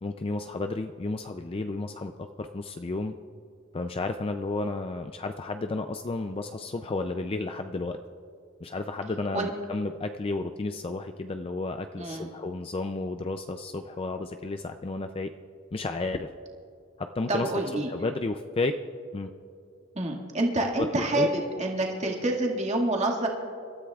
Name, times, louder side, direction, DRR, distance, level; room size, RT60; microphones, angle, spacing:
voice 1, 0.0-3.1 3.7-8.0 8.6-15.3 15.7-16.3 17.0-18.7 19.1-19.3 20.7-21.7, left 3 dB, 25° left, 7 dB, 0.4 m, -32 dB
voice 2, 12.0-12.3 17.3-17.9 20.0-23.3, right 1 dB, 35° right, -1 dB, 1.9 m, -27 dB
26.5 x 13.5 x 2.4 m, 2.5 s
head